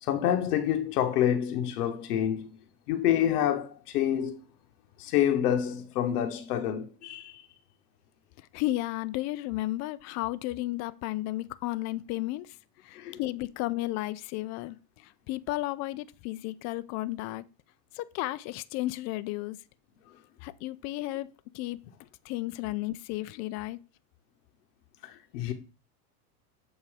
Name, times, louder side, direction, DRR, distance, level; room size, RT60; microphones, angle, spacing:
voice 1, 0.0-2.5 2.9-4.4 5.0-7.4 12.9-13.2 25.0-25.5, left 10 dB, 75° left, 1.0 m, -27 dB
voice 2, 8.4-12.6 12.8-17.4 17.9-19.6 20.4-21.3 21.5-21.8 22.2-23.8, left 17 dB, 40° left, 0.4 m, -33 dB
7.3 x 2.7 x 4.8 m
hypercardioid pair, 105°, 46 cm